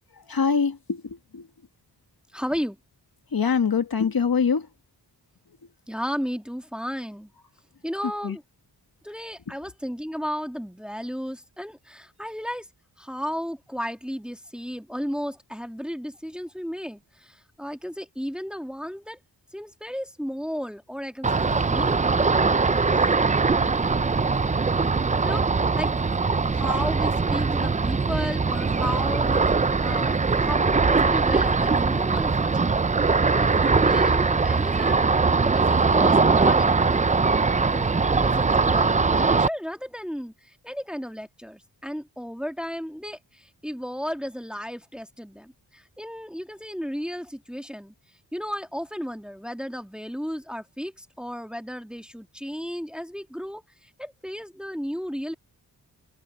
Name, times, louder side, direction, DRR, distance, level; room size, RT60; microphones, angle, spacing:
voice 1, 0.3-1.5 3.3-4.7 8.2-8.4, left 6 dB, 60° left, 2.0 m, -24 dB
voice 2, 2.3-2.8 5.9-7.3 7.8-8.4 9.0-12.7 13.0-19.2 19.5-21.9 25.2-25.9 26.5-32.7 33.3-35.0 35.4-37.1 37.7-47.9 48.3-55.3, equal, ahead, 1.9 m, -34 dB
Ocean, 21.2-39.5, right 4 dB, 20° right, 0.4 m, -21 dB
wide cardioid pair, 95°, 41 cm